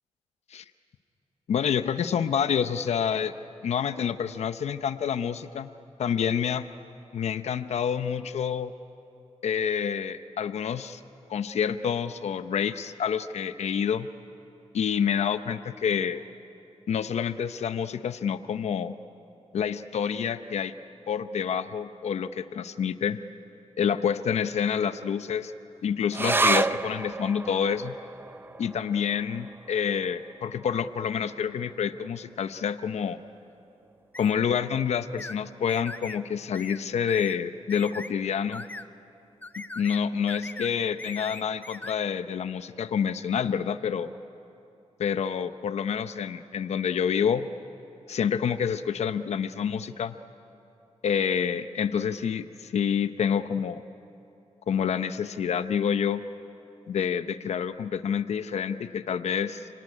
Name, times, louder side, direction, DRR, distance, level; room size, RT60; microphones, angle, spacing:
voice 1, 1.5-3.3 3.6-5.7 6.0-6.7 7.1-8.7 9.4-11.0 11.3-14.1 14.7-16.2 16.9-18.9 19.5-20.7 21.1-23.2 23.8-25.5 25.8-28.0 28.6-33.2 34.2-38.6 39.6-44.1 45.0-47.5 48.1-50.2 51.0-53.8 54.7-56.2 56.9-59.7, left 7 dB, 75° left, 11 dB, 0.8 m, -28 dB
sound 1, 26.1-32.9 33.2-33.3 33.6-34.3 34.9-35.0, right 3 dB, 20° right, 0.5 m, -31 dB
sound 2, 34.1-34.4 35.2-35.4 35.7-36.2 36.5-36.8 37.1-37.4 37.7-38.1 38.5-38.9 39.4-40.0 40.3-40.7 41.0-42.0, left 2 dB, 15° left, 0.7 m, -40 dB
30.0 x 18.5 x 9.8 m, 2.8 s
wide cardioid pair, 110°, 11 cm